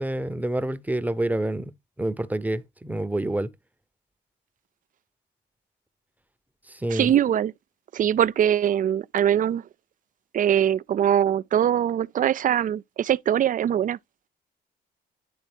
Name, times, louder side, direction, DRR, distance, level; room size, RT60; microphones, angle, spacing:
voice 1, 0.0-1.7 2.0-3.5 6.7-7.1, right 1 dB, 10° right, 0.8 m, -27 dB
voice 2, 6.9-7.5 7.9-9.6 10.3-14.0, right 10 dB, 45° right, 0.4 m, -22 dB
10.0 x 3.6 x 3.5 m
cardioid pair, 90°, 20 cm